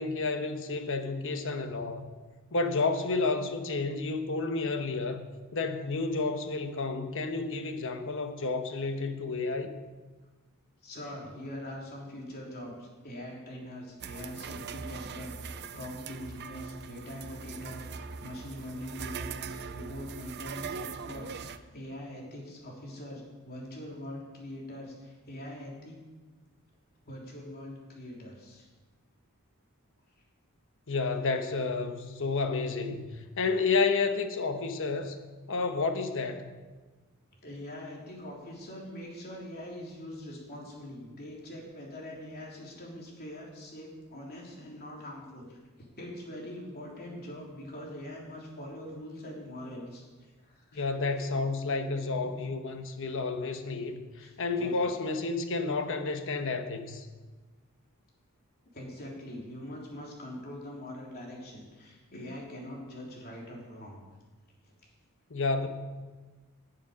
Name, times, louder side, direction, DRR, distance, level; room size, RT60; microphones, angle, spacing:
voice 1, 0.0-2.1 2.5-5.3 5.5-9.7 30.9-35.2 35.5-36.5 50.7-57.1 65.3-65.7, left 3 dB, 65° left, 7 dB, 1.1 m, -31 dB
voice 2, 10.8-26.0 27.1-28.7 37.4-50.9 52.2-52.3 54.2-54.3 54.6-54.8 58.7-64.0, left 1 dB, 45° left, -3 dB, 3.5 m, -43 dB
sound 1, 14.0-21.6, right 6 dB, 50° right, 0.6 m, -41 dB
18.0 x 7.2 x 5.1 m, 1.3 s
head